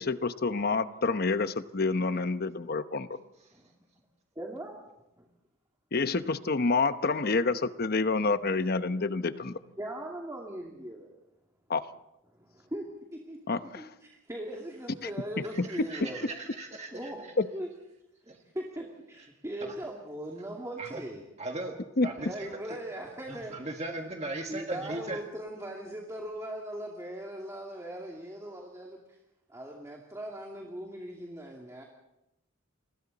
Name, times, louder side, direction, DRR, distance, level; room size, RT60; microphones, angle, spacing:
voice 1, 0.0-3.1 5.9-9.6 11.7-11.8 13.5-13.8 15.6-15.7 17.4-17.5 22.0-22.1, left 3 dB, 50° left, 0.9 m, -28 dB
voice 2, 4.4-4.8 5.2-5.3 9.8-11.1 12.3-16.3 16.9-17.7 18.2-21.2 22.2-23.7 24.5-29.2 29.5-31.8, right 1 dB, 15° right, 2.5 m, -40 dB
voice 3, 15.5-17.3 18.3-18.4 19.6-19.7 20.8-21.0 21.4-21.7 22.0-22.8 23.2-25.2, right 2 dB, 35° right, 1.6 m, -38 dB
29.5 x 24.0 x 4.1 m
head